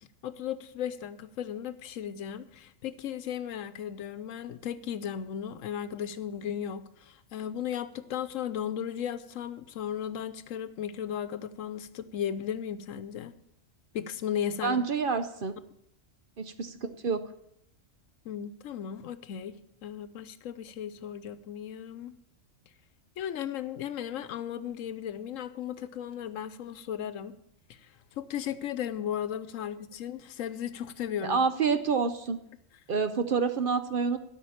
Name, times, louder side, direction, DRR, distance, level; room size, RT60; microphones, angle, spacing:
voice 1, 0.2-13.3 13.9-14.8 18.2-22.1 23.2-27.3 27.7-27.9 28.2-31.4, left 9 dB, 90° left, 13 dB, 1.1 m, -36 dB
voice 2, 14.6-15.5 16.4-17.2 31.2-32.4 32.9-34.2, right 5 dB, 50° right, 10 dB, 0.8 m, -28 dB
12.5 x 5.8 x 8.7 m, 0.76 s
omnidirectional pair, 1.3 m